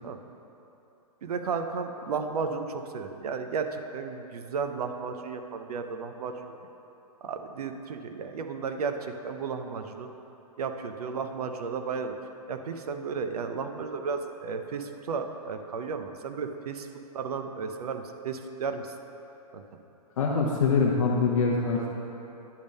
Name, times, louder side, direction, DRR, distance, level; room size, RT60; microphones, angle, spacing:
voice 1, 1.2-6.6 7.2-10.1 10.6-12.2 12.5-16.9 17.1-18.9 19.5-19.6, right 5 dB, 70° right, 7 dB, 0.7 m, -33 dB
voice 2, 20.2-21.9, left 4 dB, 55° left, -3 dB, 0.8 m, -24 dB
10.5 x 3.6 x 5.3 m, 3.0 s
hypercardioid pair, 165°, 20 cm